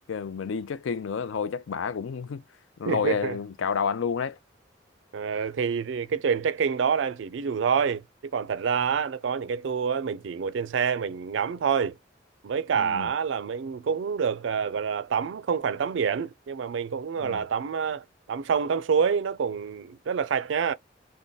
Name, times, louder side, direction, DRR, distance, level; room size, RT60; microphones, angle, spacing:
voice 1, 0.1-2.4 2.8-4.4 12.8-13.1 17.2-17.4, left 6 dB, 80° left, 0.4 m, -30 dB
voice 2, 2.9-3.4 5.1-12.0 12.4-20.7, right 6 dB, 70° right, 0.4 m, -27 dB
3.5 x 2.2 x 3.9 m
head